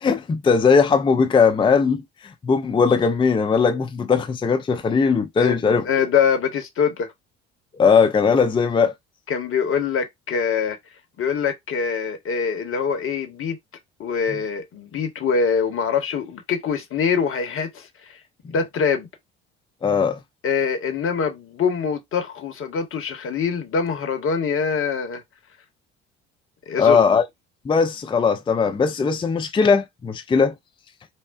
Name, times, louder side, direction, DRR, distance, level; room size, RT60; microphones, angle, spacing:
voice 1, 0.0-2.0 2.4-5.9 7.8-8.9 19.8-20.2 26.8-27.2 27.7-30.5, left 5 dB, 15° left, 0.5 m, -19 dB
voice 2, 5.4-7.1 9.3-10.8 11.2-13.6 14.0-19.1 20.4-25.2 26.7-27.1, left 6 dB, 40° left, 1.2 m, -24 dB
5.5 x 2.1 x 2.4 m
hypercardioid pair, 55°, 31 cm